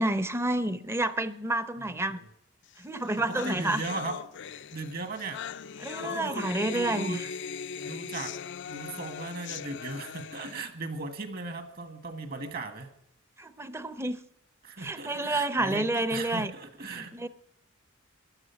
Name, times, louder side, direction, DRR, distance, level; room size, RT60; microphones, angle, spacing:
voice 1, 0.0-2.2 2.8-3.8 5.8-7.3 13.4-14.2 14.8-16.5 16.9-17.3, right 2 dB, 10° right, 13 dB, 0.7 m, -29 dB
voice 2, 1.8-2.2 3.3-4.2 4.7-5.4 6.0-7.2 7.8-8.3 8.7-12.9 14.6-17.3, right 3 dB, 45° right, 9 dB, 1.8 m, -37 dB
sound 1, 2.8-2.9 3.0-10.6, left 7 dB, 55° left, 0.5 m, -39 dB
15.5 x 11.0 x 5.9 m, 0.72 s
head